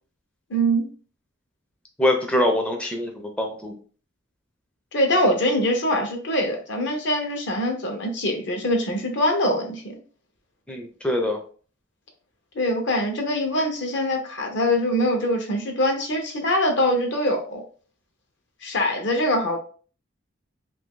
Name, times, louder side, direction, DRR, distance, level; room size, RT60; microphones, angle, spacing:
voice 1, 0.5-0.9 4.9-10.0 12.5-17.6 18.6-19.6, equal, 65° left, 4 dB, 0.8 m, -23 dB
voice 2, 2.0-3.8 10.7-11.4, left 1 dB, 5° left, 2 dB, 0.4 m, -24 dB
3.0 x 2.6 x 3.6 m, 0.41 s
head